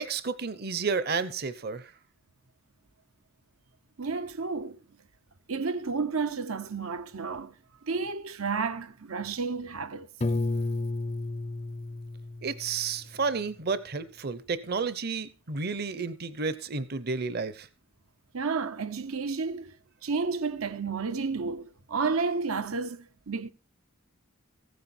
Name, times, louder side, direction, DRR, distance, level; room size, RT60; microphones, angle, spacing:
voice 1, 0.0-1.9 12.4-17.7, right 4 dB, 50° right, 0.8 m, -31 dB
voice 2, 4.0-4.8 5.5-7.5 7.8-10.1 18.3-19.7 20.0-23.5, right 4 dB, 85° right, 1.0 m, -31 dB
Piano, 10.2-13.1, left 2 dB, 30° left, 0.5 m, -32 dB
15.5 x 9.5 x 4.4 m
head